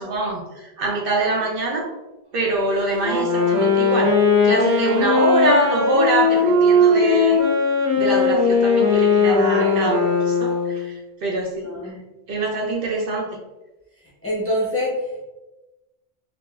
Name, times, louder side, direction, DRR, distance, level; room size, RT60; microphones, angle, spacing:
voice 1, 0.0-1.9 2.3-7.4 8.0-11.7 12.3-13.3, right 2 dB, 65° right, -1 dB, 0.7 m, -24 dB
Wind instrument woodwind instrument, 3.0-10.9, left 3 dB, 80° right, 1.4 m, -18 dB
voice 2, 9.5-10.1 11.6-12.0 14.2-15.2, equal, 15° left, -6 dB, 0.6 m, -26 dB
3.4 x 2.4 x 2.2 m, 1.0 s
omnidirectional pair, 1.1 m